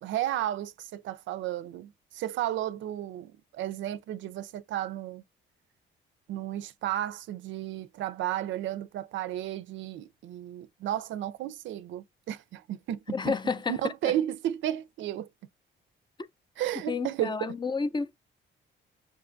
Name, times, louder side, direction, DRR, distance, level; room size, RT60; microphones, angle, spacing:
voice 1, 0.0-5.2 6.3-13.3 13.7-15.3 16.6-17.5, right 12 dB, 70° right, 0.4 m, -33 dB
voice 2, 13.1-13.8 14.1-14.2 16.9-18.1, left 4 dB, 25° left, 0.4 m, -30 dB
6.3 x 2.3 x 2.5 m
cardioid pair, 90°, 20 cm